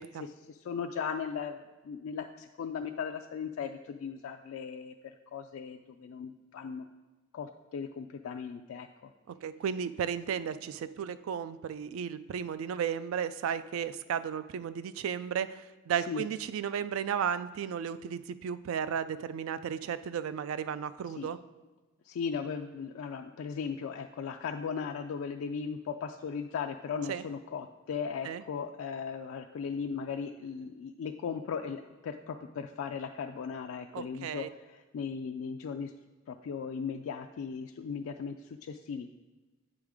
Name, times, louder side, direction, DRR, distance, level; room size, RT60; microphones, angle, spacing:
voice 1, 0.2-1.6 1.8-6.8 7.3-9.1 16.1-16.2 21.2-21.3 22.0-35.9 36.3-39.1, left 6 dB, 80° left, 4 dB, 0.3 m, -37 dB
voice 2, 9.3-21.4 27.1-27.2 28.2-28.4 33.9-34.5, right 8 dB, 80° right, 15 dB, 0.3 m, -34 dB
8.0 x 5.0 x 3.5 m, 1.2 s
head